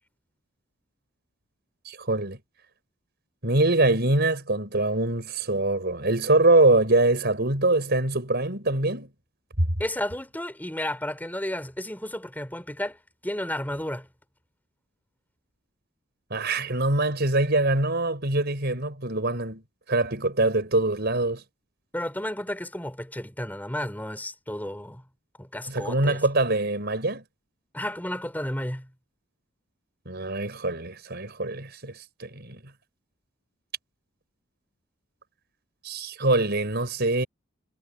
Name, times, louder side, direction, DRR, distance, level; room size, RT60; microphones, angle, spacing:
voice 1, 1.9-2.4 3.4-9.1 9.6-9.7 16.3-19.6 19.9-21.4 25.7-27.2 30.1-32.6 35.8-37.3, right 2 dB, 50° right, 5.3 m, -24 dB
voice 2, 9.8-13.0 13.2-14.1 21.9-25.0 25.4-26.2 27.7-28.9, left 1 dB, 10° left, 4.8 m, -32 dB
head